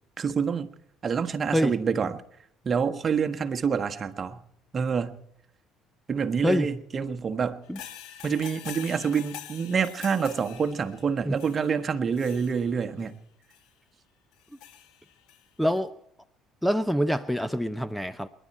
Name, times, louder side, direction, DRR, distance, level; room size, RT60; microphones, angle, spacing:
voice 1, 0.2-0.7 1.0-2.2 2.6-4.4 4.7-5.2 6.1-7.6 8.2-13.1, right 6 dB, 40° right, 1.4 m, -27 dB
sound 1, 7.6-13.1 13.5-13.7 14.3-15.4 15.7-15.8, left 11 dB, 75° left, 1.7 m, -45 dB
voice 2, 15.6-15.9 16.6-18.3, equal, ahead, 0.7 m, -25 dB
28.5 x 11.5 x 4.3 m
supercardioid pair, 80°, 0 cm